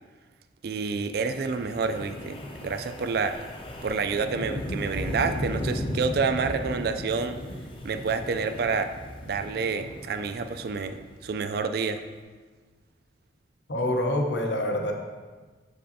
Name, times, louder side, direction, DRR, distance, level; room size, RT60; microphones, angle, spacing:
voice 1, 0.6-3.4 3.8-7.4 7.8-8.9 9.2-12.0, right 5 dB, 55° right, 8 dB, 0.3 m, -28 dB
Wind, 1.2-11.4, left 1 dB, 30° left, 0.6 m, -36 dB
voice 2, 13.7-14.9, left 1 dB, 75° left, 2 dB, 0.8 m, -26 dB
7.6 x 5.3 x 2.8 m, 1.4 s
head